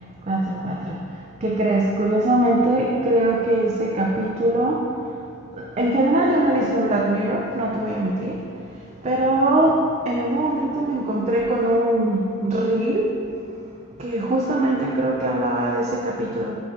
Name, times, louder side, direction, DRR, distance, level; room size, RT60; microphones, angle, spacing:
voice 1, 0.3-1.0 1.4-4.8 5.6-8.4 9.0-9.8 10.1-13.2 14.0-16.6, right 1 dB, 30° right, -1 dB, 0.4 m, -21 dB
8.7 x 3.1 x 4.2 m, 2.5 s
head